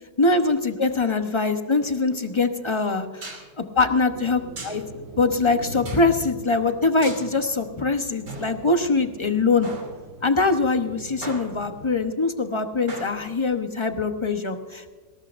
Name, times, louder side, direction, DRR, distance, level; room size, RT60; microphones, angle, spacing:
voice 1, 0.2-4.8 5.2-9.7 10.2-14.9, left 3 dB, 25° left, 6 dB, 0.6 m, -23 dB
sound 1, 2.1-2.2 3.2-3.5 4.6-4.9 5.9-6.1 7.0-7.3 8.3-9.2 9.6-10.3 11.2-11.9 12.9-13.5, right 2 dB, 65° right, 3.5 m, -39 dB
sound 2, 4.1-12.0, right 2 dB, 85° right, 2.7 m, -43 dB
20.0 x 18.5 x 2.6 m, 1.4 s
omnidirectional pair, 1.9 m